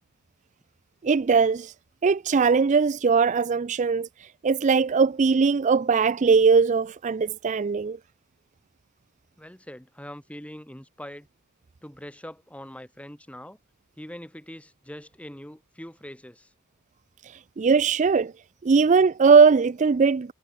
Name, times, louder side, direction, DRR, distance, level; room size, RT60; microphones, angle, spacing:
voice 1, 1.0-1.7 2.0-8.0 17.2-18.3 18.6-20.3, right 5 dB, 35° right, 0.4 m, -20 dB
voice 2, 9.4-11.3 11.8-13.6 14.0-16.5, equal, 5° left, 2.7 m, -42 dB
head